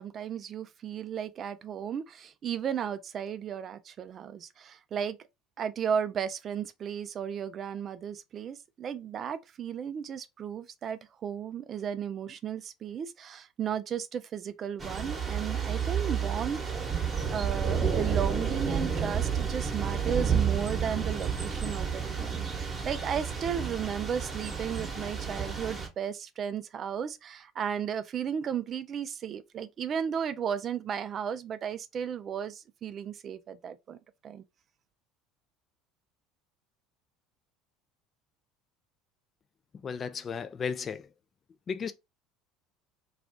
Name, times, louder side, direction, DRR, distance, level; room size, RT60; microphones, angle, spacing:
voice 1, 0.0-5.2 5.6-16.6 17.3-34.4, right 8 dB, 45° right, 0.4 m, -34 dB
Thunder / Rain, 14.8-25.9, right 6 dB, 25° right, 1.0 m, -31 dB
voice 2, 39.8-41.0 41.7-41.9, left 6 dB, 35° left, 0.4 m, -34 dB
2.4 x 2.3 x 3.6 m
hypercardioid pair, 75°, 0 cm